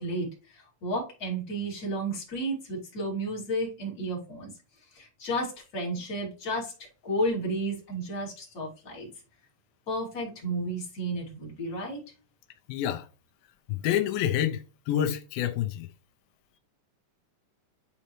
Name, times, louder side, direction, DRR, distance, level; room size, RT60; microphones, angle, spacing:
voice 1, 0.0-4.5 4.9-6.7 7.0-9.1 9.9-12.0, right 1 dB, 30° left, 2.8 m, -32 dB
voice 2, 12.7-13.1 13.7-15.9, left 11 dB, 90° left, 2.5 m, -28 dB
9.6 x 4.2 x 3.0 m
omnidirectional pair, 4.0 m